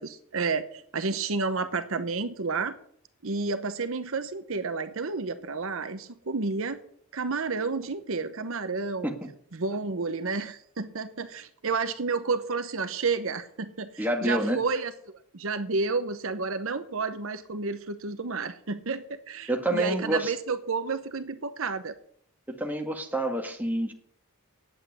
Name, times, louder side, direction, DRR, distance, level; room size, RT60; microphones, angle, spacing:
voice 1, 0.0-2.7 3.2-6.8 7.1-9.1 9.5-14.9 15.3-21.9, right 4 dB, 65° right, 10 dB, 0.9 m, -30 dB
voice 2, 14.0-14.6 19.5-20.3 22.5-23.9, right 1 dB, 10° right, 3 dB, 1.8 m, -28 dB
9.5 x 8.3 x 9.4 m, 0.63 s
head